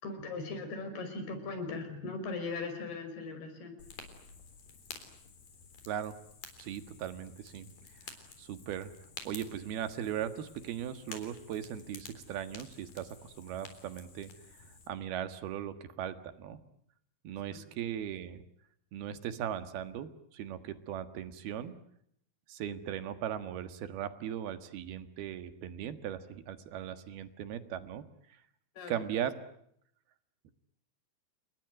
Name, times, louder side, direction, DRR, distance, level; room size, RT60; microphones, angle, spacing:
voice 1, 0.0-3.8 28.8-29.0, left 3 dB, 90° left, 7 dB, 7.5 m, -39 dB
Fire, 3.8-14.9, left 5 dB, 65° left, 5.4 m, -51 dB
voice 2, 6.6-7.7 8.4-8.9 9.2-14.3 14.9-16.6 17.2-18.4 18.9-21.7 22.5-28.0 28.9-29.3 30.4-30.5, right 10 dB, 80° right, 11 dB, 3.5 m, -38 dB
30.0 x 20.5 x 9.2 m, 0.72 s
omnidirectional pair, 4.4 m